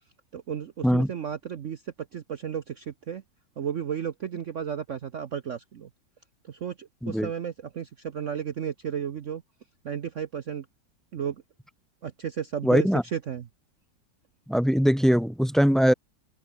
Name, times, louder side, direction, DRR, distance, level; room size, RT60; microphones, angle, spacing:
voice 1, 0.3-1.8 2.1-3.2 3.6-5.9 6.5-9.4 9.8-10.6 11.1-11.4 12.0-12.9 13.1-13.5, right 8 dB, 55° right, 0.9 m, -33 dB
voice 2, 12.6-13.0 14.5-15.9, equal, ahead, 0.9 m, -21 dB
open air
omnidirectional pair, 2.0 m